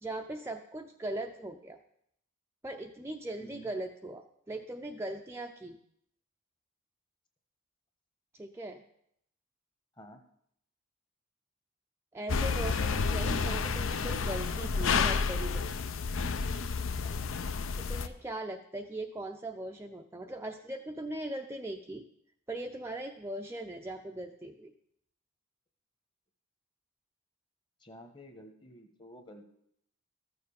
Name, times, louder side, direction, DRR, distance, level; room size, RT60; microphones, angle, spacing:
voice 1, 0.0-1.8 2.6-5.8 8.3-8.8 12.1-15.7 17.8-22.0 22.5-24.7, right 1 dB, 10° right, 3 dB, 0.5 m, -39 dB
voice 2, 3.4-3.7 10.0-10.2 17.0-17.3 27.8-29.4, equal, 20° left, 7 dB, 1.2 m, -51 dB
sound 1, 12.3-18.1, left 5 dB, 60° left, 0.6 m, -30 dB
13.5 x 7.0 x 7.0 m, 0.72 s
head